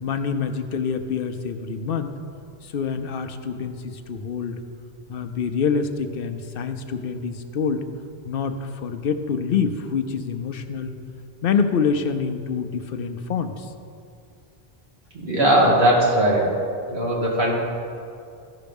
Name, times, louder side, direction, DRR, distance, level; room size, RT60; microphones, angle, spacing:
voice 1, 0.0-2.1 2.6-4.6 5.1-7.8 8.2-11.0 11.4-13.7, left 6 dB, 65° left, 8 dB, 0.8 m, -26 dB
voice 2, 15.1-16.5 16.9-17.5, right 1 dB, 85° right, -4 dB, 2.2 m, -19 dB
14.5 x 5.8 x 5.3 m, 2.5 s
omnidirectional pair, 1.0 m